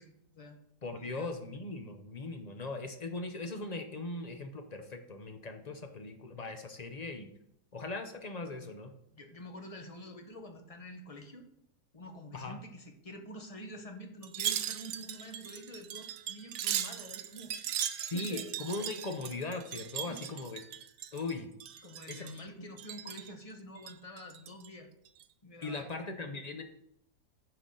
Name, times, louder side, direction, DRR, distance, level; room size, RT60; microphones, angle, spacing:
voice 1, 0.0-1.3 9.1-11.5 11.9-18.5 20.1-20.2 21.8-24.9 25.4-25.9, left 1 dB, 25° left, 4 dB, 1.0 m, -47 dB
voice 2, 0.8-7.3 7.7-9.0 12.3-12.6 18.1-20.6 21.1-21.5 22.1-22.4 25.6-26.6, left 3 dB, 45° left, 6 dB, 0.5 m, -39 dB
Wind chime, 14.2-21.3 21.6-22.4 22.8-23.3 23.8-24.7 25.1-25.2, right 11 dB, 80° right, 1.2 m, -38 dB
10.0 x 6.8 x 3.8 m, 0.75 s
omnidirectional pair, 1.8 m